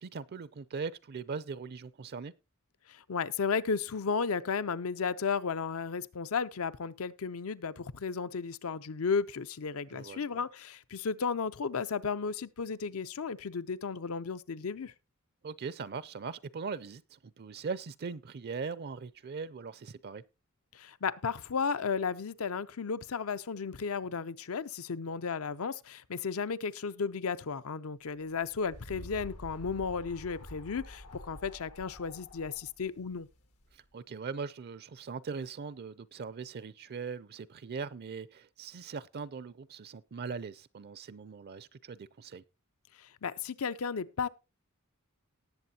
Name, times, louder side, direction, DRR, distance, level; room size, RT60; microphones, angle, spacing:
voice 1, 0.0-2.3 9.9-10.4 15.4-20.2 28.9-29.0 33.7-42.4, right 5 dB, 50° right, 0.5 m, -40 dB
voice 2, 2.9-14.9 20.7-33.3 43.0-44.3, left 5 dB, 70° left, 0.6 m, -34 dB
sound 1, 28.2-33.8, left 1 dB, 85° left, 1.8 m, -49 dB
18.5 x 7.6 x 2.8 m
head